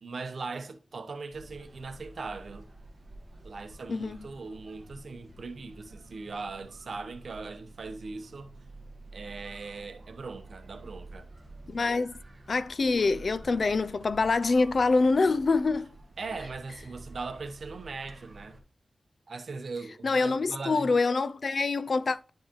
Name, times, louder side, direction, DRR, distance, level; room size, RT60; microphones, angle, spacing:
voice 1, 0.0-2.7 3.4-8.5 9.1-11.3 16.2-18.6 19.3-20.9, right 4 dB, 65° right, 0.8 m, -39 dB
sound 1, 1.3-18.6, right 2 dB, 30° right, 1.3 m, -49 dB
voice 2, 11.7-12.1 12.5-15.9 20.0-22.3, left 3 dB, 55° left, 0.3 m, -25 dB
10.5 x 4.6 x 3.0 m
wide cardioid pair, 140°, 0 cm